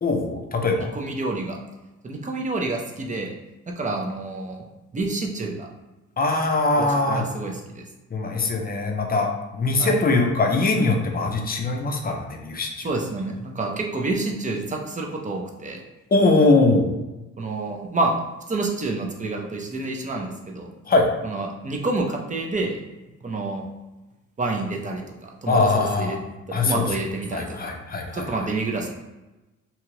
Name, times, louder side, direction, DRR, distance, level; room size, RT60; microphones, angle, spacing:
voice 1, 0.0-0.9 6.2-7.2 8.1-12.9 16.1-17.0 20.9-21.1 25.5-26.2 26.5-26.9 27.3-28.3, left 3 dB, 30° left, 2 dB, 0.6 m, -21 dB
voice 2, 0.8-1.6 2.0-3.3 3.7-4.6 4.9-5.7 6.8-7.8 9.8-10.0 12.8-15.8 17.4-18.1 18.5-20.7 21.2-22.8 23.2-23.6 24.4-26.2 26.5-27.7 28.1-28.9, right 2 dB, 25° right, 1 dB, 0.6 m, -28 dB
2.9 x 2.3 x 3.1 m, 1.1 s
cardioid pair, 90°, 30 cm